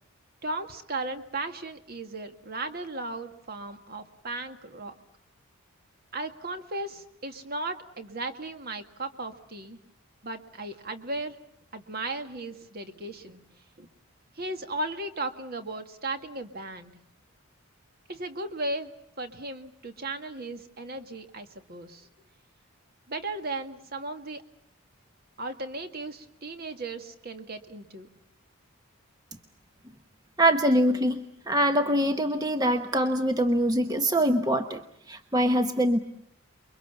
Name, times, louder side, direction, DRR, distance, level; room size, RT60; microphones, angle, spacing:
voice 1, 0.4-4.9 6.1-9.8 10.2-11.4 11.7-13.4 13.8-13.9 14.4-16.9 18.1-18.9 19.2-22.1 23.1-24.4 25.4-28.1, right 2 dB, 45° right, 7 dB, 1.9 m, -36 dB
voice 2, 30.4-31.2 31.5-34.8 35.1-36.0, right 1 dB, 15° right, 7 dB, 1.0 m, -23 dB
29.5 x 23.0 x 7.0 m, 0.73 s
head